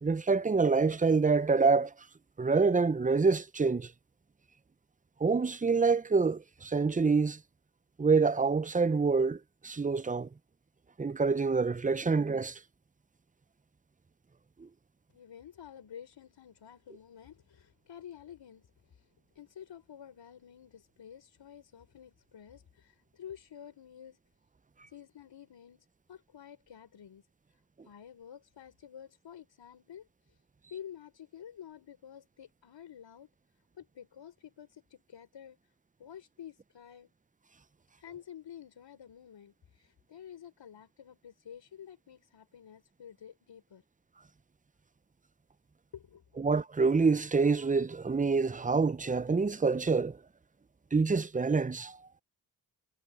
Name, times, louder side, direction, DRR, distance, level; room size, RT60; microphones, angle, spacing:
voice 1, 0.0-1.9 2.4-3.9 5.2-7.4 8.0-10.3 11.0-12.6 14.6-14.7 46.4-50.2 50.9-52.0, right 4 dB, 20° right, 0.6 m, -26 dB
voice 2, 15.1-24.2 24.9-27.3 27.8-30.4 30.7-33.3 33.7-35.6 36.0-37.1 38.0-43.8 45.9-46.4, left 9 dB, 80° left, 4.7 m, -50 dB
cardioid pair, 50°, 43 cm